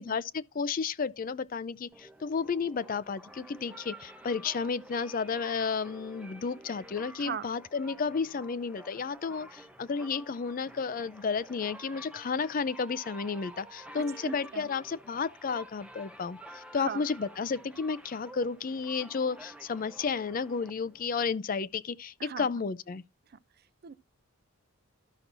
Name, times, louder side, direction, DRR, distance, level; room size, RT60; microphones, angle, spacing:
voice 1, 0.0-23.0, left 5 dB, 40° left, 0.4 m, -32 dB
sound 1, 1.9-21.3, right 1 dB, 5° right, 0.8 m, -50 dB
voice 2, 14.0-14.7 16.7-17.0 22.2-22.5 23.3-23.9, right 7 dB, 45° right, 0.5 m, -40 dB
13.0 x 6.0 x 2.6 m
head